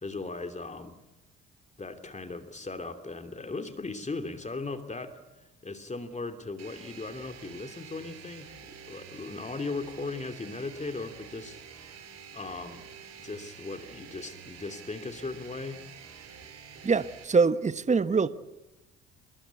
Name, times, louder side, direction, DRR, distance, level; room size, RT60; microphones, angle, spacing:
voice 1, 0.0-1.0 1.8-12.0 12.3-12.8 13.2-15.8, left 3 dB, 20° left, 2.9 m, -38 dB
sound 1, 6.6-17.2, right 7 dB, 55° right, 6.1 m, -48 dB
voice 2, 16.8-18.3, right 4 dB, 20° right, 1.3 m, -24 dB
27.0 x 22.0 x 8.4 m
hypercardioid pair, 55°, 31 cm